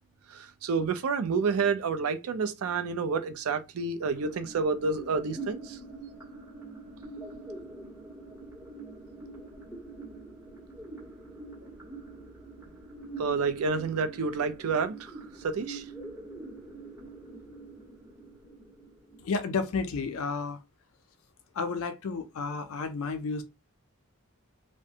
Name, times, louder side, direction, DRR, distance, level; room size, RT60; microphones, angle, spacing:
voice 1, 0.3-5.8 13.2-15.1 15.4-15.8, right 4 dB, 80° right, 0.4 m, -29 dB
sound 1, 4.0-20.0, right 3 dB, 10° right, 1.2 m, -45 dB
voice 2, 19.2-20.6 21.5-23.4, left 4 dB, 75° left, 0.4 m, -31 dB
2.4 x 2.1 x 2.7 m
head